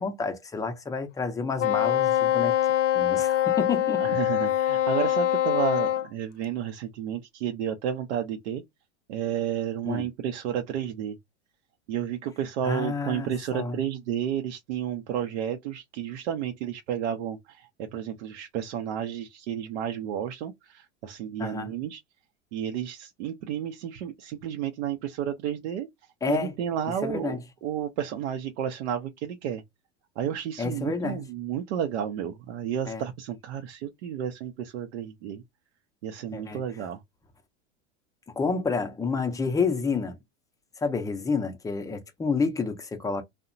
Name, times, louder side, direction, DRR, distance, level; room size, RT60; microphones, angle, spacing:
voice 1, 0.0-2.6 2.9-4.0 9.8-10.1 12.6-13.8 21.4-21.7 26.2-26.5 26.9-27.4 30.6-31.3 32.9-33.0 36.3-36.6 38.3-40.2 40.8-43.2, left 4 dB, 10° left, 0.5 m, -29 dB
Wind instrument woodwind instrument, 1.6-6.1, left 12 dB, 90° left, 0.6 m, -24 dB
voice 2, 4.0-8.6 9.1-11.2 11.9-22.0 22.5-25.9 26.3-29.6 30.2-35.4 36.0-37.0, right 9 dB, 70° right, 0.6 m, -31 dB
2.7 x 2.1 x 2.5 m
hypercardioid pair, 110°, 36 cm